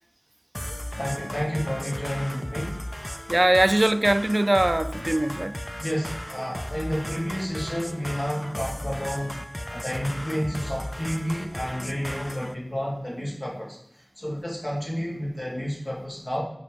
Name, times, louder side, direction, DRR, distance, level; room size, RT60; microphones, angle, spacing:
sound 1, 0.5-12.5, equal, 15° left, 0.4 m, -36 dB
voice 1, 1.0-2.8 5.8-9.4 9.7-13.8 14.2-16.4, equal, 55° left, 2.9 m, -30 dB
voice 2, 3.3-5.6, right 1 dB, 45° right, 0.3 m, -21 dB
5.8 x 5.2 x 4.9 m
wide cardioid pair, 40°, 0 cm